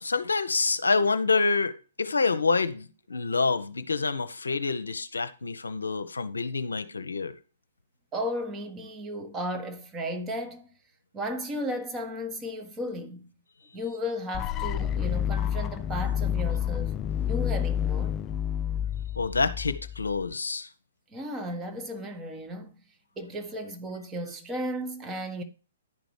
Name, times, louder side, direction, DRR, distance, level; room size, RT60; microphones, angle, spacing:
voice 1, 0.0-1.7 2.0-7.3 19.2-20.7, left 4 dB, 70° left, 0.8 m, -27 dB
voice 2, 8.1-10.7 11.1-13.3 13.7-17.0 17.3-18.2 21.1-22.8 23.2-25.4, equal, 15° right, 1.4 m, -34 dB
sound 1, 14.3-20.3, left 10 dB, 20° left, 0.3 m, -29 dB
11.0 x 5.1 x 4.8 m
figure-of-eight pair, 120°, 0 cm